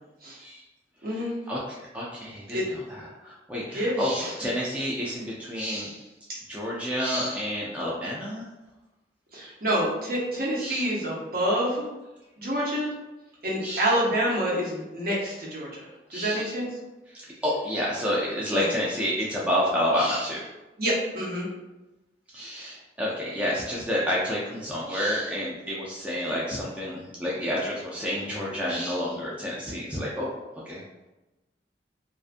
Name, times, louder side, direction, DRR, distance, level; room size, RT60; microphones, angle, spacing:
voice 1, 1.0-1.3 2.5-2.6 3.7-4.3 6.3-6.4 9.3-11.8 12.4-12.9 13.4-15.8 16.1-16.7 18.5-18.7 20.8-21.5, equal, 55° right, -5 dB, 0.8 m, -27 dB
voice 2, 1.9-2.6 2.9-6.0 6.5-8.5 10.6-10.8 13.6-13.8 16.1-16.5 17.4-20.5 22.3-30.3 30.7-30.8, equal, 10° right, -5 dB, 0.3 m, -29 dB
2.4 x 2.4 x 2.4 m, 1.0 s
head